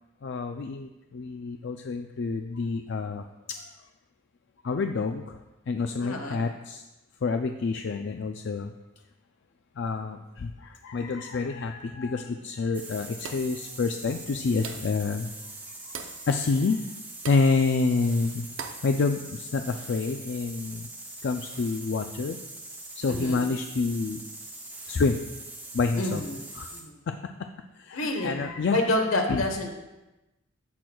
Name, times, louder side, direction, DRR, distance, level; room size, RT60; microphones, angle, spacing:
voice 1, 0.2-3.7 4.6-5.4 5.7-6.8 7.2-8.7 9.8-15.3 16.3-16.8 17.3-18.5 18.8-20.9 21.2-22.4 23.0-24.2 24.9-25.2 25.7-26.2 26.6-26.7 27.1-27.5 27.8-28.8 29.3-29.4, left 4 dB, 55° left, 6 dB, 0.4 m, -28 dB
voice 2, 6.0-6.5 23.1-23.5 25.9-26.4 26.7-27.0 27.9-28.4 28.7-29.7, left 1 dB, 75° left, 3 dB, 1.2 m, -28 dB
sound 1, 12.7-26.9, right 2 dB, 10° right, 0.9 m, -42 dB
sound 2, 13.2-13.6 14.6-15.0 15.9-16.2 17.2-17.5 18.6-18.9, right 6 dB, 60° right, 0.6 m, -39 dB
14.5 x 6.1 x 2.3 m, 1.0 s
head